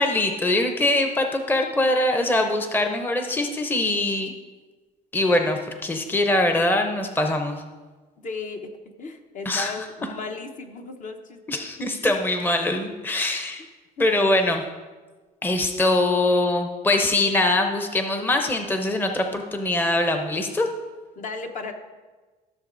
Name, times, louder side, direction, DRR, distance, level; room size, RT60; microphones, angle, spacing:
voice 1, 0.0-4.3 5.1-7.6 9.5-9.7 11.5-13.6 14.0-14.6 15.4-20.7, left 2 dB, 10° left, 5 dB, 0.7 m, -23 dB
voice 2, 8.2-11.6 14.0-14.1 21.2-21.7, left 3 dB, 50° left, 4 dB, 0.9 m, -35 dB
14.0 x 6.7 x 2.6 m, 1.3 s
cardioid pair, 110°, 17 cm